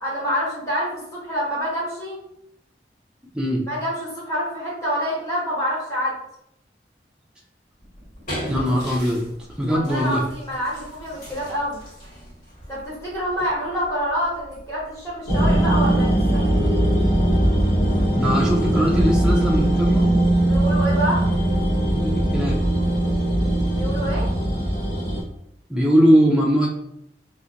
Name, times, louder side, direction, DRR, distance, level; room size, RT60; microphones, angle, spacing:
voice 1, 0.0-2.2 3.7-6.1 9.7-11.8 12.7-16.4 20.4-21.2 23.7-24.3, equal, 15° left, -7 dB, 1.1 m, -27 dB
voice 2, 3.3-3.7 8.5-9.3 9.6-10.2 18.1-20.2 21.9-22.7 25.7-26.7, equal, 5° right, -4 dB, 0.3 m, -20 dB
sound 1, 7.8-15.9, equal, 45° left, 1.4 m, -39 dB
sound 2, 15.3-25.2, right 1 dB, 75° left, 0.9 m, -20 dB
2.4 x 2.1 x 2.8 m, 0.76 s
head